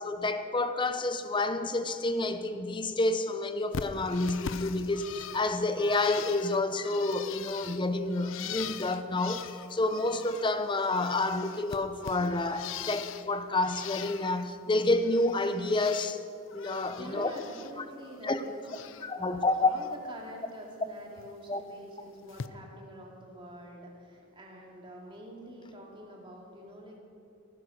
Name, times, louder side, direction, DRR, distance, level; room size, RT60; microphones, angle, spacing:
voice 1, 0.0-16.2 16.5-17.3 17.8-17.9 18.2-18.4 19.0-19.7 21.5-21.6, left 2 dB, 25° left, 9 dB, 0.7 m, -29 dB
Bird, 3.7-10.5 10.8-13.3 13.6-14.5 14.8-16.2 16.5-17.7 18.0-19.1 19.5-19.9 21.2-21.3 22.3-22.5, left 7 dB, 65° left, 0.5 m, -42 dB
voice 2, 16.9-27.0, equal, 25° right, -2 dB, 2.4 m, -47 dB
15.5 x 9.9 x 6.5 m, 2.5 s
head